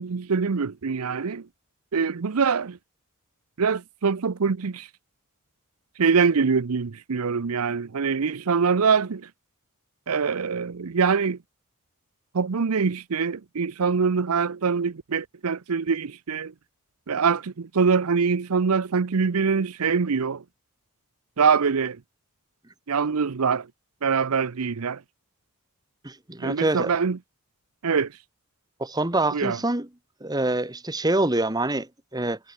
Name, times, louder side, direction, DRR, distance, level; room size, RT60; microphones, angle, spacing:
voice 1, 0.0-1.5 1.9-2.8 3.6-4.9 6.0-9.3 10.1-11.4 12.3-16.5 17.1-20.4 21.4-22.0 22.9-23.7 24.0-25.0 26.4-27.2 27.8-28.1 29.3-29.6, right 5 dB, 85° right, 0.7 m, -24 dB
voice 2, 26.0-26.9 28.8-29.9 30.2-32.4, right 2 dB, 20° right, 1.4 m, -25 dB
head